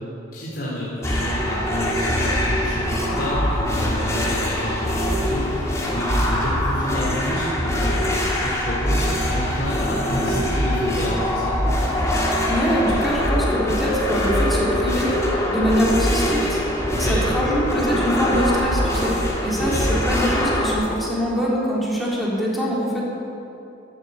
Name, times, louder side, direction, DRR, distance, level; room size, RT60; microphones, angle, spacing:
voice 1, 0.3-11.6 16.9-17.2 19.6-19.8, left 1 dB, 55° left, -7 dB, 3.8 m, -29 dB
sound 1, 1.0-20.7, equal, 15° left, 2.8 m, -23 dB
voice 2, 12.5-15.1 15.5-16.6 17.0-19.2 19.4-23.0, equal, ahead, -6 dB, 3.6 m, -24 dB
14.0 x 11.5 x 8.3 m, 2.8 s
head